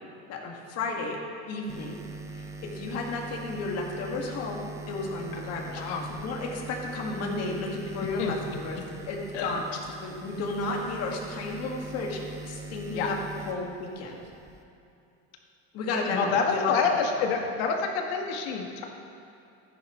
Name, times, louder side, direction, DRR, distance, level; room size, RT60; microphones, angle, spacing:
voice 1, 0.3-1.2 1.5-2.0 2.6-5.8 6.1-9.6 10.0-13.1 13.5-14.2 15.7-16.7 17.2-17.3, left 3 dB, 50° left, -1 dB, 2.0 m, -33 dB
sound 1, 1.7-14.6, right 2 dB, 10° right, 0.6 m, -42 dB
voice 2, 5.7-6.0 8.2-8.3 8.7-8.8 9.3-9.6 12.9-13.1 16.0-18.8, left 5 dB, 80° left, 2 dB, 1.5 m, -28 dB
14.0 x 9.6 x 3.1 m, 2.7 s
supercardioid pair, 125°, 32 cm